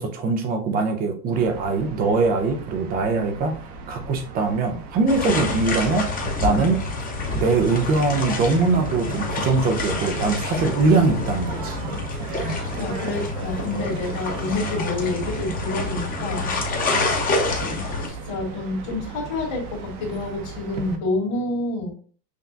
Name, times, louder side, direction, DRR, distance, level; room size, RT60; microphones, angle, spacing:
voice 1, 0.0-3.6 3.9-6.1 6.4-6.8 7.3-11.8 16.9-17.2, right 4 dB, 20° right, 6 dB, 0.3 m, -22 dB
sound 1, 1.3-21.0, right 4 dB, 45° right, 0.7 m, -37 dB
sound 2, 5.1-18.1, left 3 dB, 20° left, 0.7 m, -28 dB
voice 2, 12.5-16.6 18.1-21.9, left 2 dB, 55° left, -5 dB, 1.8 m, -28 dB
5.9 x 2.2 x 2.6 m, 0.43 s
supercardioid pair, 125°, 48 cm